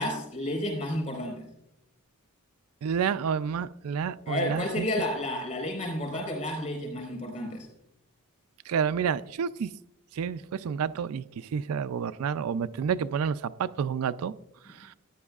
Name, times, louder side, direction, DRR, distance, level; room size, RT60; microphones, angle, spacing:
voice 1, 0.0-1.5 4.3-7.7, left 1 dB, 35° left, 4.5 m, -31 dB
voice 2, 2.8-4.9 8.7-9.7 10.1-14.3 14.8-14.9, right 7 dB, 75° right, 0.4 m, -29 dB
14.0 x 10.5 x 2.4 m
head